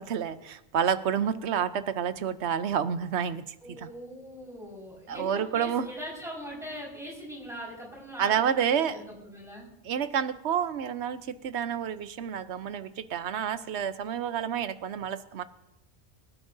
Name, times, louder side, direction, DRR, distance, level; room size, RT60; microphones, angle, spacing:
voice 1, 0.0-3.9 5.1-5.9 8.2-9.0 9.8-15.4, right 8 dB, 80° right, 13 dB, 1.0 m, -29 dB
voice 2, 3.6-9.7, equal, 5° right, -4 dB, 4.8 m, -41 dB
24.5 x 12.5 x 2.7 m, 0.87 s
omnidirectional pair, 1.1 m